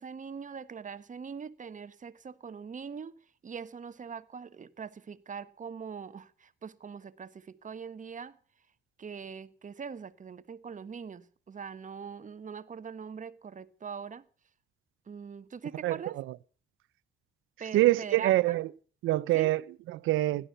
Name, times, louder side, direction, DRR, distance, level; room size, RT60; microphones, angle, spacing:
voice 1, 0.0-3.2 3.4-8.4 9.0-14.3 15.1-16.2 17.6-18.6 19.3-19.6, right 6 dB, 40° right, 1.3 m, -42 dB
voice 2, 15.8-16.2 17.7-18.7 19.0-20.5, right 17 dB, 85° right, 0.7 m, -26 dB
17.0 x 12.0 x 6.7 m
cardioid pair, 90°, 20 cm